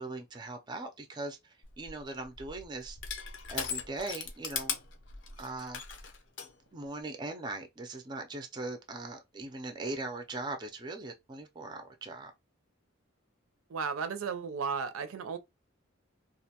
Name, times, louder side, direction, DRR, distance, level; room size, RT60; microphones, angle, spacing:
voice 1, 0.0-3.2 3.5-4.8 5.4-5.8 6.7-12.3, right 2 dB, 20° right, 0.4 m, -40 dB
Crushing, 1.6-6.5, left 6 dB, 60° left, 0.5 m, -39 dB
voice 2, 13.7-15.4, right 5 dB, 85° right, 0.5 m, -34 dB
2.4 x 2.1 x 2.7 m
head